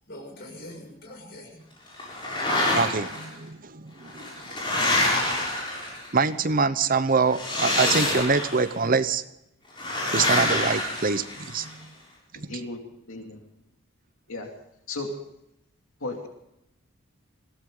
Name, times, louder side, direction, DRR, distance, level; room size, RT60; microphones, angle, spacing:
voice 1, 0.1-2.3, left 1 dB, 50° left, 6.3 m, -44 dB
sound 1, 2.0-3.2 4.0-6.2 7.3-8.7 9.8-11.7, left 1 dB, 25° left, 6.8 m, -26 dB
voice 2, 2.5-4.3 6.1-9.2 10.1-11.9 12.3-12.6, right 4 dB, 40° right, 0.8 m, -25 dB
voice 3, 12.5-13.4 14.3-14.6 14.9-15.3 16.0-16.3, left 2 dB, 80° left, 2.6 m, -35 dB
21.5 x 16.5 x 3.8 m
head